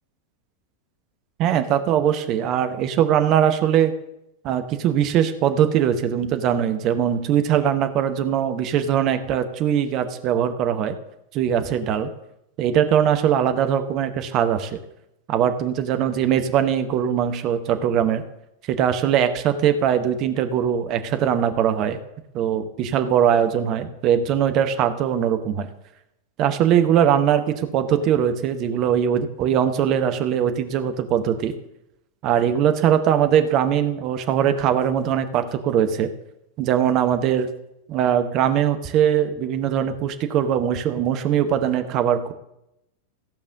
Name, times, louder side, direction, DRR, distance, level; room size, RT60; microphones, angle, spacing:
voice 1, 1.4-3.9 4.4-11.0 11.3-12.1 12.6-14.8 15.3-18.2 18.7-22.0 22.3-25.7 26.4-31.5 32.2-36.1 36.6-37.5 37.9-42.3, right 9 dB, 35° right, 8 dB, 1.0 m, -21 dB
15.0 x 5.4 x 6.5 m, 0.85 s
figure-of-eight pair, 90°, 0 cm